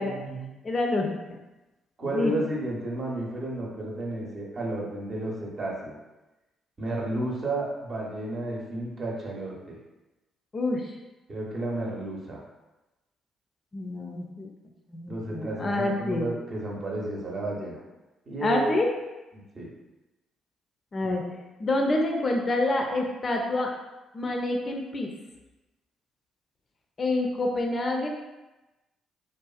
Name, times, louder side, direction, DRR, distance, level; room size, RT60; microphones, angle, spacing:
voice 1, 0.0-0.5 2.0-5.9 6.8-9.8 11.3-12.4 15.1-17.8 18.3-18.7 19.3-19.7 21.0-21.1, right 1 dB, 45° right, -3 dB, 0.7 m, -32 dB
voice 2, 0.6-1.4 2.0-2.3 10.5-11.0 13.7-14.5 14.9-16.3 18.4-18.9 20.9-21.2 21.6-23.7 24.1-25.1 27.0-28.1, left 2 dB, 40° left, 1 dB, 0.4 m, -27 dB
2.4 x 2.3 x 2.3 m, 1.1 s
hypercardioid pair, 45°, 0 cm